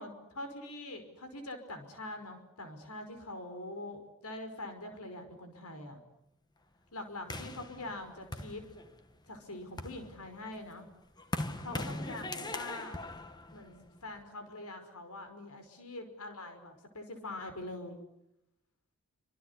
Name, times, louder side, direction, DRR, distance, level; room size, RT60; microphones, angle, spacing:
voice 1, 0.0-6.0 6.9-8.6 9.3-10.8 11.6-13.1 13.5-18.0, left 2 dB, 85° left, 7 dB, 5.4 m, -44 dB
sound 1, 7.3-9.1 9.6-14.2, left 2 dB, 20° left, 1.4 m, -40 dB
27.0 x 26.0 x 8.4 m, 0.85 s
head